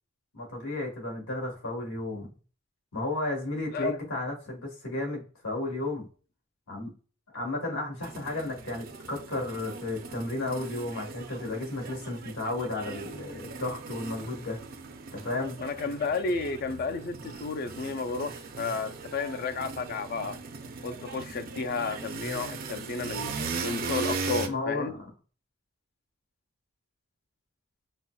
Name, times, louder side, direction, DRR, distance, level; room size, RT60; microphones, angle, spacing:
voice 1, 0.3-2.3 2.9-6.1 6.7-6.9 7.3-14.6 15.1-15.6 24.4-25.1, left 2 dB, 80° left, 1.4 m, -33 dB
sound 1, 8.0-24.5, right 4 dB, 45° right, 0.4 m, -39 dB
voice 2, 15.6-20.3 20.8-23.3 23.6-24.9, left 4 dB, 45° left, 0.3 m, -32 dB
5.2 x 2.1 x 2.2 m
head